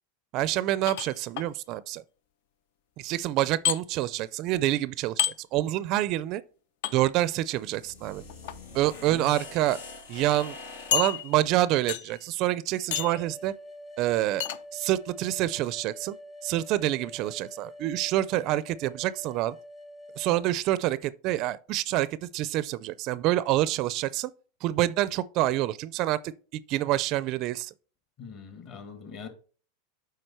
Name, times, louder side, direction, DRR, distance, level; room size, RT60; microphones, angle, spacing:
voice 1, 0.3-2.0 3.0-6.4 6.9-8.2 8.7-9.8 10.1-10.6 10.9-13.5 14.0-16.1 16.4-19.6 20.2-24.3 24.6-27.7, right 15 dB, 40° right, 0.4 m, -27 dB
sound 1, 0.9-1.5 3.6-3.8 5.2-5.4 6.8-6.9 8.3-8.6 9.3-9.4 9.8-9.9 10.9-11.5 11.9-12.2 12.9-13.2 14.4-14.6, left 11 dB, 65° left, 0.6 m, -29 dB
sound 2, 7.5-11.3, left 3 dB, 85° left, 2.8 m, -44 dB
sound 3, 12.9-20.5, equal, 10° left, 0.8 m, -46 dB
voice 2, 28.2-29.3, left 6 dB, 40° left, 1.9 m, -42 dB
7.9 x 4.7 x 4.4 m
supercardioid pair, 150°, 0 cm